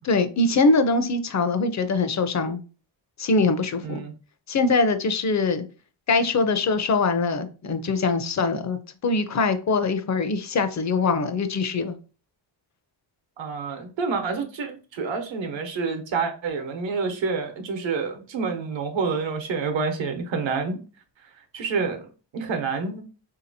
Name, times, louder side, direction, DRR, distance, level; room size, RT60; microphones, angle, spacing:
voice 1, 0.1-2.6 3.2-4.0 4.5-5.6 6.1-12.0, left 3 dB, 40° left, 0.5 m, -23 dB
voice 2, 3.8-4.1 13.4-20.8 21.2-22.1 22.3-23.0, right 4 dB, 70° right, 0.9 m, -28 dB
3.7 x 2.8 x 2.6 m
cardioid pair, 100°, 47 cm